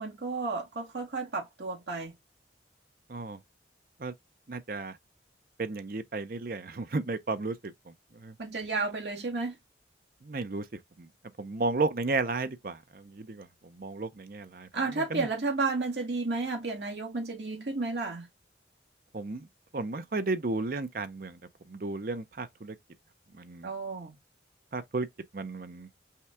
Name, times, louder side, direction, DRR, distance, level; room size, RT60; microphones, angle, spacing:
voice 1, 0.0-2.1 8.4-9.5 14.7-18.3 23.6-24.1, right 3 dB, 70° right, 1.4 m, -32 dB
voice 2, 4.5-5.0 5.6-8.4 10.2-10.7 11.0-11.1 11.4-14.7 14.9-15.3 19.1-19.5 19.7-21.4 21.7-22.8 23.3-23.7 24.7-25.1 25.3-25.9, right 3 dB, 50° right, 0.6 m, -33 dB
5.6 x 2.3 x 3.4 m
head